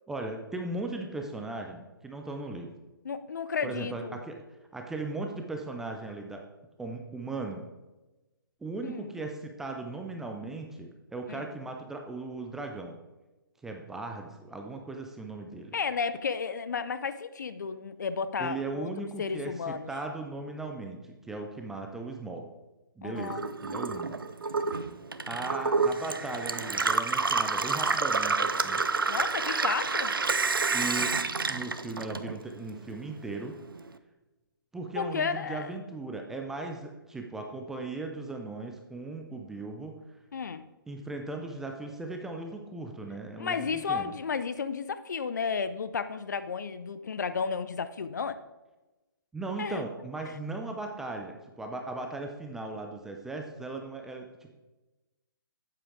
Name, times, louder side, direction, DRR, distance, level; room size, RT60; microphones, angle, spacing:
voice 1, 0.1-2.8 3.6-4.4 4.7-6.4 6.8-7.7 8.6-13.0 13.6-15.7 18.4-22.5 23.0-24.2 25.3-28.8 30.7-31.1 31.5-33.6 34.7-40.0 40.9-44.1 49.3-54.5, right 3 dB, 5° right, 3 dB, 0.4 m, -38 dB
voice 2, 3.0-4.2 8.8-9.1 11.3-11.5 15.7-19.9 23.0-23.4 29.1-30.1 34.9-35.7 40.3-40.6 43.4-48.4 49.6-49.8, left 5 dB, 50° left, 12 dB, 0.6 m, -33 dB
Gurgling / Water tap faucet / Sink (filling or washing), 23.2-32.7 33.0-33.9, right 4 dB, 70° right, 0.6 m, -29 dB
9.5 x 7.9 x 3.6 m, 1.1 s
figure-of-eight pair, 135°, 12 cm